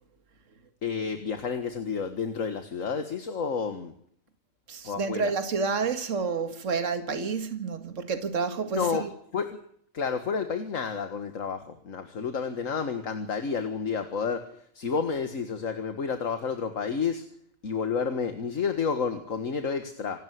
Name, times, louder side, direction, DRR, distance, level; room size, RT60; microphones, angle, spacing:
voice 1, 0.8-3.9 4.8-5.5 8.7-9.0 9.3-9.6 9.9-17.2 17.6-20.2, left 5 dB, 65° left, 2.0 m, -30 dB
voice 2, 4.7-9.1, right 5 dB, 60° right, 2.1 m, -29 dB
27.0 x 12.5 x 9.4 m
omnidirectional pair, 1.5 m